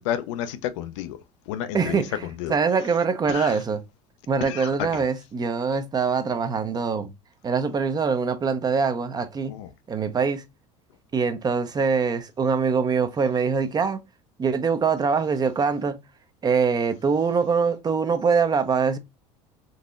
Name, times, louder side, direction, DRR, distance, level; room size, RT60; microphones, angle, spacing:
voice 1, 0.1-1.2 1.5-2.0 2.4-2.6 3.3-3.5 4.4-5.0 9.5-9.7, left 11 dB, 80° left, 0.5 m, -31 dB
voice 2, 1.7-3.8 4.3-7.1 7.4-9.5 9.9-10.4 11.1-14.0 14.4-16.0 16.4-19.0, right 5 dB, 25° right, 0.6 m, -23 dB
3.9 x 2.8 x 2.4 m
supercardioid pair, 95°, 15 cm